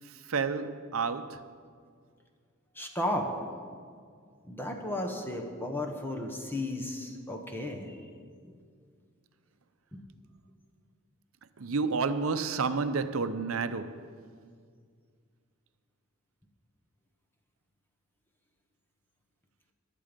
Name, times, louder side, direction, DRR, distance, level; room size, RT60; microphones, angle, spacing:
voice 1, 0.3-1.5 11.6-14.1, right 4 dB, 70° right, 0.7 m, -30 dB
voice 2, 2.7-3.7 4.4-8.0 8.4-8.5 9.9-10.0, left 1 dB, 10° left, 1.1 m, -34 dB
23.0 x 7.7 x 5.2 m
head